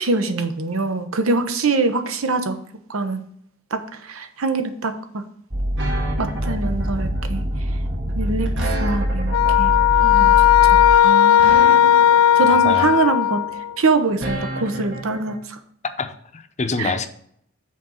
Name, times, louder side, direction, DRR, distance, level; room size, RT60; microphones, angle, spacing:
voice 1, 0.0-2.6 2.9-3.2 3.7-5.2 6.2-7.4 8.1-8.5 8.8-9.7 10.0-10.3 10.7-12.1 12.4-13.4 13.8-15.6 16.8-16.9, right 3 dB, 85° right, 9 dB, 0.9 m, -24 dB
sound 1, 5.5-11.0, equal, 30° right, 0.9 m, -24 dB
sound 2, 5.8-15.4, right 1 dB, 65° right, 1.4 m, -32 dB
sound 3, 9.3-13.7, left 11 dB, 85° left, 0.4 m, -15 dB
voice 2, 12.4-12.9 16.0-17.1, left 4 dB, 35° left, 9 dB, 0.7 m, -26 dB
6.6 x 4.0 x 6.4 m, 0.67 s
head